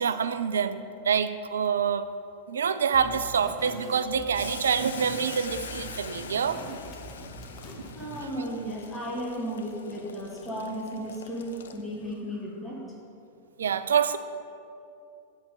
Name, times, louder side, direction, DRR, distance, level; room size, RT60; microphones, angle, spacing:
voice 1, 0.0-2.0 2.5-6.8 7.8-7.9 13.6-14.2, right 7 dB, 65° right, 11 dB, 0.3 m, -26 dB
sound 1, 2.9-8.4, equal, 30° left, 1.1 m, -44 dB
Boiling, 4.3-12.1, left 6 dB, 65° left, 0.4 m, -44 dB
voice 2, 7.9-12.8, equal, 10° left, -4 dB, 1.3 m, -34 dB
8.1 x 4.0 x 6.5 m, 2.6 s
figure-of-eight pair, 90°, 0 cm